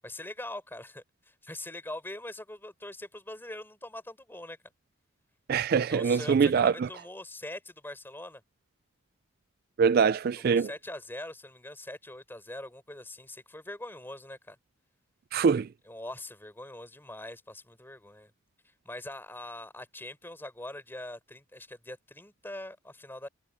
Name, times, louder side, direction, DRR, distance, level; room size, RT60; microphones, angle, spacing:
voice 1, 0.0-4.6 5.9-8.4 10.4-14.6 15.9-18.3 18.6-23.3, left 1 dB, 10° left, 4.5 m, -42 dB
voice 2, 5.5-6.9 9.8-10.7 15.3-15.7, right 6 dB, 45° right, 0.3 m, -23 dB
head